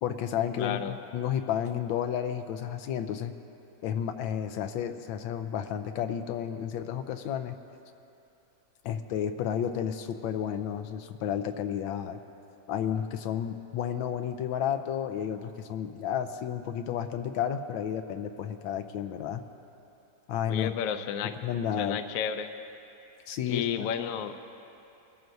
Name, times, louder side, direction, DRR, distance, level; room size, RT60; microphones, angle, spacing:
voice 1, 0.0-3.3 3.8-7.6 8.8-12.2 12.7-19.4 20.3-20.7 21.2-22.0 23.3-23.9, left 9 dB, 85° left, 8 dB, 1.4 m, -32 dB
voice 2, 0.6-0.9 20.5-21.3 21.8-22.5 23.5-24.3, left 8 dB, 70° left, 8 dB, 0.8 m, -31 dB
23.0 x 14.0 x 2.6 m, 2.8 s
omnidirectional pair, 2.1 m